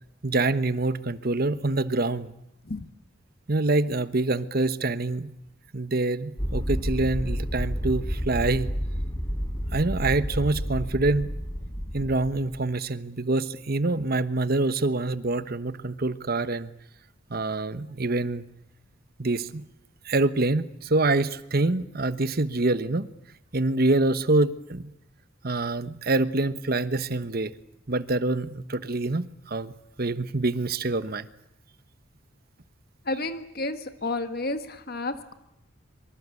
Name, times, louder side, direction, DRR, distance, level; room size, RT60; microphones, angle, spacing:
voice 1, 0.2-2.3 3.5-5.3 5.7-8.7 9.7-11.3 11.9-16.7 17.3-18.4 19.2-19.6 20.0-23.1 23.5-24.9 25.4-27.5 27.9-31.3, right 2 dB, 50° right, 14 dB, 1.1 m, -26 dB
sound 1, 6.4-12.6, equal, 15° left, 3.4 m, -30 dB
voice 2, 33.1-35.3, left 2 dB, 50° left, 10 dB, 1.6 m, -31 dB
25.0 x 24.5 x 8.4 m, 0.84 s
head